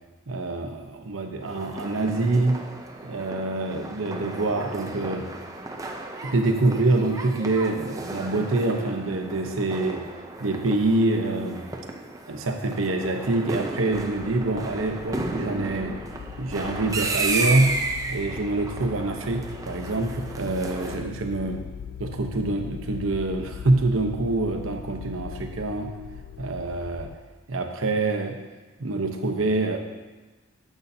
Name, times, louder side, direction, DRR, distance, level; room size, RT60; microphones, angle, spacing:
voice 1, 0.3-2.6 3.0-5.3 6.2-10.0 10.4-11.7 12.3-16.0 16.4-21.6 22.0-26.0 26.4-27.1 27.5-28.4 28.8-29.8, right 2 dB, 80° right, 4 dB, 0.9 m, -25 dB
sound 1, 1.4-21.0, right 3 dB, 15° right, 0.5 m, -34 dB
sound 2, 13.9-27.2, left 8 dB, 75° left, 0.3 m, -40 dB
11.0 x 7.1 x 2.7 m, 1.2 s
head